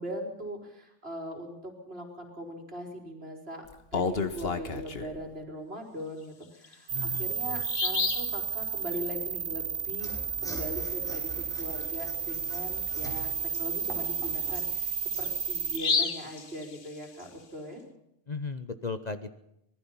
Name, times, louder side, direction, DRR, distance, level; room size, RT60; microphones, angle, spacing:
voice 1, 0.0-3.6 3.9-10.1 10.4-14.9 15.2-17.8, equal, 55° right, 2 dB, 4.7 m, -40 dB
Bird vocalization bird call bird song, 3.7-5.2 6.6-6.7 7.2-7.3 7.6-8.3 11.8-12.0 12.3-12.4 13.0-17.2, left 4 dB, 55° left, 1.6 m, -32 dB
voice 2, 6.9-7.6 18.3-19.3, left 4 dB, 40° left, 10 dB, 1.0 m, -36 dB
sound 1, 6.9-15.8, right 6 dB, 85° right, 1.4 m, -32 dB
Mechanisms / Sawing, 9.9-14.7, equal, 5° left, 5.7 m, -44 dB
25.5 x 20.0 x 5.7 m, 0.79 s
omnidirectional pair, 1.2 m